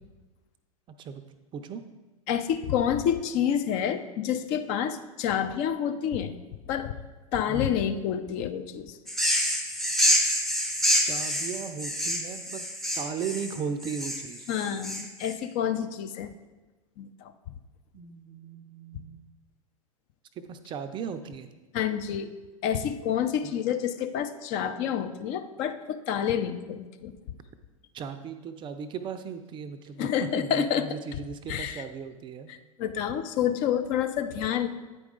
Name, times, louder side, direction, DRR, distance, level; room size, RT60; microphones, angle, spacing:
voice 1, 2.3-6.4 6.7-7.0 7.3-9.0 14.5-16.3 17.0-17.3 21.7-22.3 22.6-27.1 30.0-31.2 31.5-31.8 32.5-34.7, left 9 dB, 40° left, 9 dB, 0.5 m, -28 dB
voice 2, 7.5-7.8 11.0-12.6 13.0-14.5 17.9-19.2 20.5-21.5 23.4-23.5 27.9-32.5, right 6 dB, 25° right, 9 dB, 0.5 m, -37 dB
sound 1, 9.1-15.3, equal, ahead, 0.8 m, -27 dB
8.9 x 4.7 x 3.8 m, 1.2 s
figure-of-eight pair, 95°, 18 cm